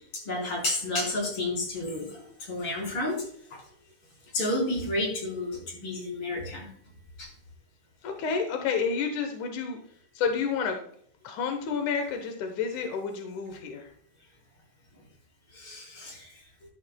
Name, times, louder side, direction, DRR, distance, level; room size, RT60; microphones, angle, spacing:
voice 1, 0.0-3.3 3.5-3.6 4.3-6.7 7.2-7.3 15.5-16.3, left 2 dB, 30° left, -2 dB, 4.8 m, -31 dB
voice 2, 8.0-9.8 10.1-10.8 11.2-13.9, left 6 dB, 75° left, 5 dB, 1.8 m, -30 dB
13.0 x 11.5 x 2.3 m, 0.62 s
omnidirectional pair, 4.9 m